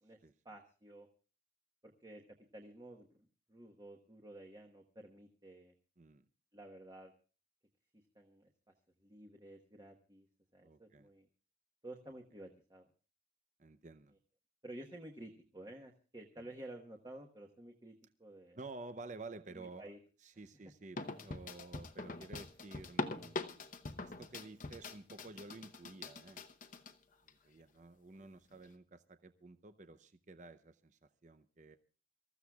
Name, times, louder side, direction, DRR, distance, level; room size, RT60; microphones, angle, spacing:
voice 1, 0.4-1.1 1.8-2.2 2.5-5.7 6.5-7.1 8.1-8.5 9.0-10.3 10.5-11.3 11.8-12.8 14.6-17.9 18.2-18.6 19.5-20.0, right 1 dB, 20° right, 1.2 m, -52 dB
voice 2, 10.6-11.1 13.6-14.1 16.4-16.5 18.6-19.9 20.2-26.4 27.2-31.8, right 3 dB, 40° right, 0.7 m, -52 dB
sound 1, 21.0-26.9 27.3-27.4 28.2-28.3, left 3 dB, 45° left, 0.9 m, -43 dB
26.0 x 14.5 x 2.3 m
head